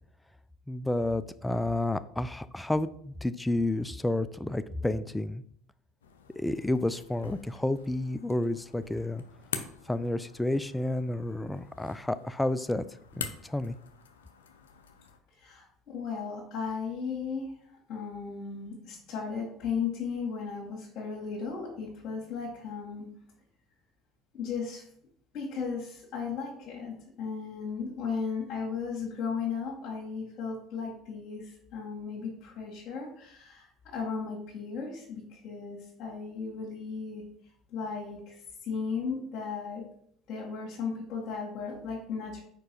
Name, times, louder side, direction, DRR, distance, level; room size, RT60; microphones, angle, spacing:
voice 1, 0.7-5.4 6.4-9.2 9.9-12.8 13.2-13.8, left 1 dB, 10° left, 14 dB, 0.4 m, -30 dB
sound 1, 6.0-15.2, left 6 dB, 85° left, 0.5 m, -45 dB
voice 2, 15.4-17.5 17.9-23.1 24.3-24.8 25.3-37.2 37.7-39.8 40.3-42.4, left 5 dB, 55° left, -5 dB, 1.9 m, -36 dB
4.8 x 4.5 x 4.5 m, 0.66 s
hypercardioid pair, 65°, 0 cm